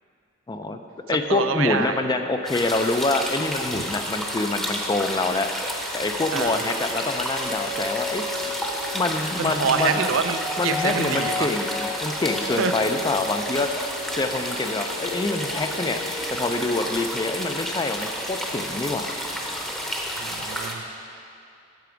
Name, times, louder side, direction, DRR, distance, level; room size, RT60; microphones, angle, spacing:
voice 1, 0.5-0.8 1.1-5.5 5.9-8.6 8.9-10.0 10.6-13.7 14.2-16.0 16.3-19.1, left 2 dB, 20° left, 6 dB, 0.3 m, -26 dB
voice 2, 1.1-2.0 3.7-3.9 6.3-6.6 9.4-11.6 12.0-12.1 12.6-12.7 20.2-20.8, right 6 dB, 75° right, 8 dB, 0.5 m, -26 dB
sound 1, 2.5-20.7, equal, ahead, 0.7 m, -31 dB
sound 2, 6.0-18.1 18.3-18.4, left 2 dB, 70° left, 2.4 m, -35 dB
9.1 x 6.8 x 5.0 m, 2.5 s
head